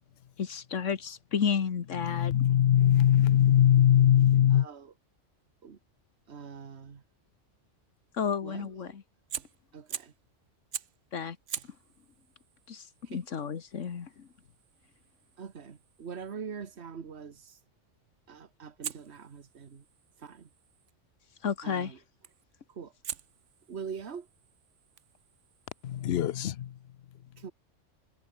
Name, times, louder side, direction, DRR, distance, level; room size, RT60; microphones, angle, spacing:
voice 1, 0.4-2.4 8.1-9.0 11.1-11.4 12.7-14.3 21.4-21.9, left 7 dB, 85° left, 1.7 m, -32 dB
voice 2, 1.9-4.7 25.8-26.8, left 11 dB, 65° left, 0.9 m, -22 dB
voice 3, 6.3-7.0 8.4-8.9 9.7-10.1 13.1-13.2 15.4-17.4 18.3-19.8 20.2-20.5 21.6-22.0 22.8-22.9 23.7-24.3 27.4-27.5, right 6 dB, 60° right, 1.7 m, -43 dB
Fire, 9.3-10.3 10.7-11.1 11.5-16.4 18.8-20.9 22.2-22.5 23.0-26.5, right 8 dB, 75° right, 1.3 m, -45 dB
omnidirectional pair, 1.2 m